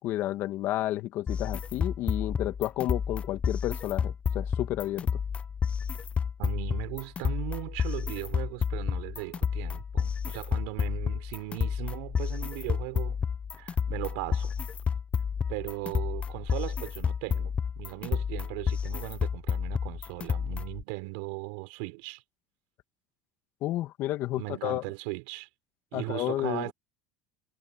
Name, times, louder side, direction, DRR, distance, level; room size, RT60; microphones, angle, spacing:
voice 1, 0.0-5.1 23.6-24.8 25.9-26.7, left 15 dB, 60° left, 2.1 m, -31 dB
sound 1, 1.3-20.8, left 6 dB, 30° left, 0.5 m, -30 dB
voice 2, 6.4-13.2 13.6-14.7 15.5-22.2 24.3-25.5 25.9-26.7, right 26 dB, 80° right, 4.2 m, -38 dB
supercardioid pair, 90°, 4 cm